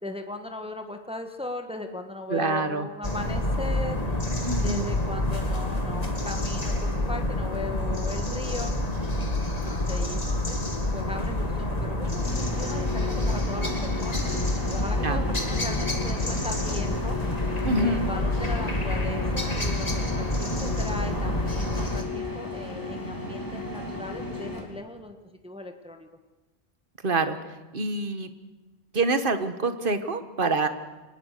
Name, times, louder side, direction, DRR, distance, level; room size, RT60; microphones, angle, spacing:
voice 1, 0.0-4.2 4.6-8.7 9.6-10.6 10.9-17.2 17.7-25.1 25.4-26.1, left 2 dB, 5° right, 5 dB, 1.5 m, -38 dB
voice 2, 2.3-2.9 4.4-4.9 15.0-15.2 17.6-18.0 27.0-27.4 27.7-28.3 28.9-30.7, right 3 dB, 55° right, 9 dB, 1.6 m, -26 dB
sound 1, 3.0-22.0, left 1 dB, 35° left, 2.2 m, -28 dB
sound 2, 12.2-24.6, left 2 dB, 20° left, 3.4 m, -35 dB
25.0 x 20.0 x 6.7 m, 1.2 s
omnidirectional pair, 1.1 m